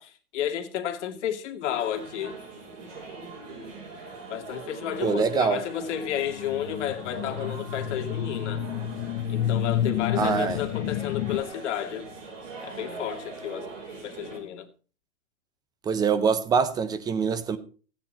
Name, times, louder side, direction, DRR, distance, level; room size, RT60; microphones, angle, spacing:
voice 1, 0.0-2.4 4.3-8.6 9.3-12.1 12.6-13.7 14.0-14.7, left 10 dB, 55° left, 2.1 m, -32 dB
sound 1, 1.7-14.4, right 3 dB, 65° right, 7.6 m, -42 dB
voice 2, 5.0-5.6 10.1-10.6 15.8-17.6, right 6 dB, 10° right, 0.6 m, -24 dB
sound 2, 6.1-11.4, left 11 dB, 30° left, 1.0 m, -30 dB
15.5 x 9.2 x 4.4 m
hypercardioid pair, 145°, 41 cm